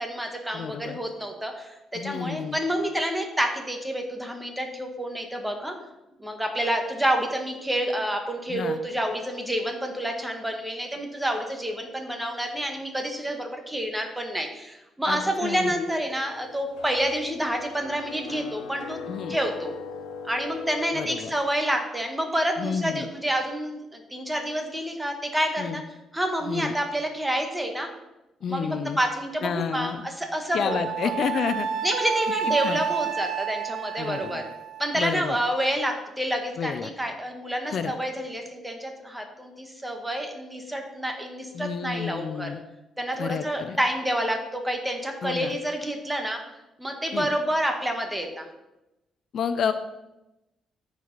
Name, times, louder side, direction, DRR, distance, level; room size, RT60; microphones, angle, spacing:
voice 1, 0.0-5.7 6.2-19.0 19.3-19.7 20.2-25.8 26.1-27.9 28.5-30.8 31.0-31.1 31.8-34.4 34.8-42.5 43.0-46.4 46.8-48.5, equal, 10° right, 3 dB, 1.6 m, -28 dB
voice 2, 0.5-1.0 1.9-2.6 8.5-8.8 15.1-15.8 19.1-19.4 20.9-21.3 22.6-23.1 25.6-25.8 26.4-26.7 28.4-29.0 29.4-30.0 30.5-31.7 32.5-32.8 34.0-34.4 34.9-35.4 36.6-36.9 37.7-37.9 41.5-42.6 43.2-43.8 45.2-45.6 47.1-47.3 49.3-49.7, left 7 dB, 60° left, 11 dB, 0.5 m, -30 dB
sound 1, 15.2-21.4, left 5 dB, 90° left, 0.9 m, -40 dB
Wind instrument woodwind instrument, 30.7-35.0, right 8 dB, 75° right, 0.7 m, -30 dB
13.5 x 4.8 x 4.1 m, 0.96 s
cardioid pair, 90°, 0 cm